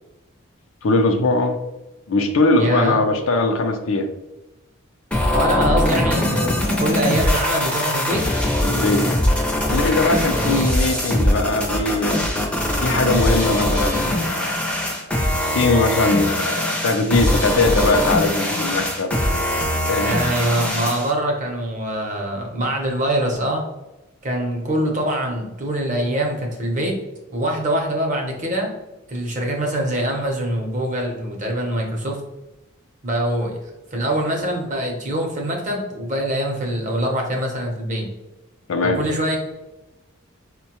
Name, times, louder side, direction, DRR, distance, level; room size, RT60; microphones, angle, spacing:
voice 1, 0.8-1.6 2.1-4.1 8.6-9.3 9.7-12.2 12.8-14.6 15.3-20.2 38.7-39.0, left 2 dB, 70° left, 5 dB, 0.5 m, -21 dB
voice 2, 2.6-3.0 5.3-8.2 10.3-10.8 20.0-23.6 24.2-26.9 27.3-28.7 29.1-32.2 33.0-33.5 33.9-38.1 38.8-39.4, right 1 dB, 35° right, 1 dB, 0.7 m, -24 dB
sound 1, 5.1-21.1, left 1 dB, 5° left, 0.5 m, -21 dB
4.4 x 2.2 x 2.9 m, 1.0 s
head